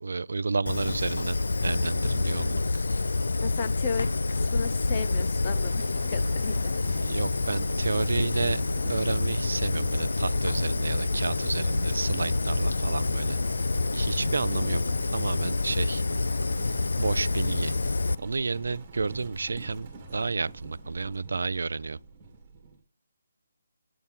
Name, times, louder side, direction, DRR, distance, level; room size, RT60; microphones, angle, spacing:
voice 1, 0.0-1.4 1.6-2.6 7.0-13.4 13.9-14.8 15.1-16.0 17.0-17.7 18.2-22.0, right 4 dB, 70° right, 0.3 m, -31 dB
Fire, 0.7-18.2, left 3 dB, 85° left, 0.3 m, -27 dB
voice 2, 3.4-7.0 14.5-15.0, left 6 dB, 25° left, 0.6 m, -35 dB
Livestock farm animals working animals, 3.7-22.8, right 3 dB, 15° right, 2.0 m, -45 dB
8.6 x 4.2 x 3.6 m
hypercardioid pair, 175°, 0 cm